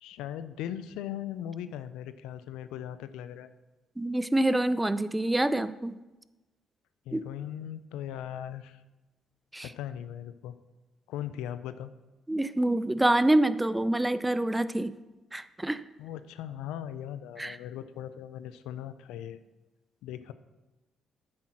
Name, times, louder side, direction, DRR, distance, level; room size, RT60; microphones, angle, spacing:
voice 1, 0.0-3.5 7.1-8.8 9.6-10.5 11.1-11.9 16.0-19.4 20.0-20.3, left 10 dB, 80° left, 13 dB, 0.5 m, -39 dB
voice 2, 4.0-6.0 7.1-7.2 9.5-9.7 12.3-14.9 15.3-15.8 17.4-17.6, right 1 dB, 15° right, 14 dB, 0.6 m, -26 dB
8.7 x 7.6 x 6.1 m, 1.1 s
hypercardioid pair, 50°, 0 cm